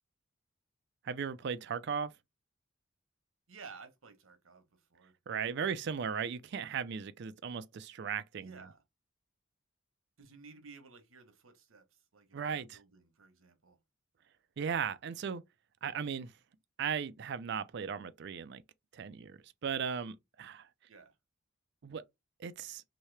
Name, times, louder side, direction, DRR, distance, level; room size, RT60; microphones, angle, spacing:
voice 1, 1.0-2.1 5.3-8.5 12.3-12.8 14.6-15.4 15.8-16.3 16.8-18.6 18.9-20.7 21.8-22.0 22.4-22.8, right 7 dB, 55° right, 0.4 m, -37 dB
voice 2, 3.5-5.2 8.4-8.8 10.2-13.8 20.9-21.2, right 4 dB, 90° right, 1.0 m, -55 dB
3.0 x 2.7 x 3.2 m
head